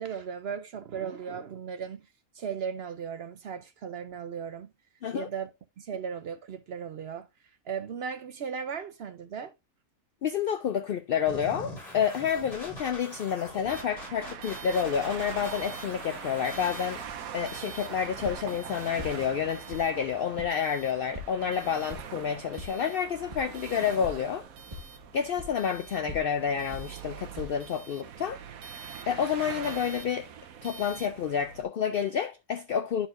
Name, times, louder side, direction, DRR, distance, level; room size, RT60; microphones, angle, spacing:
voice 1, 0.0-2.0 2.3-4.7 5.1-5.5 5.8-7.3 7.7-9.5, right 7 dB, 60° right, 0.7 m, -36 dB
voice 2, 10.2-17.0 17.3-24.5 25.1-28.4 29.1-30.3 30.6-33.1, left 7 dB, 80° left, 0.5 m, -29 dB
sound 1, 11.3-19.3, left 1 dB, 45° left, 5.0 m, -44 dB
sound 2, 13.7-31.6, right 8 dB, 80° right, 1.2 m, -43 dB
sound 3, 17.0-27.8, left 1 dB, 25° right, 1.3 m, -46 dB
11.5 x 4.2 x 2.5 m
omnidirectional pair, 1.5 m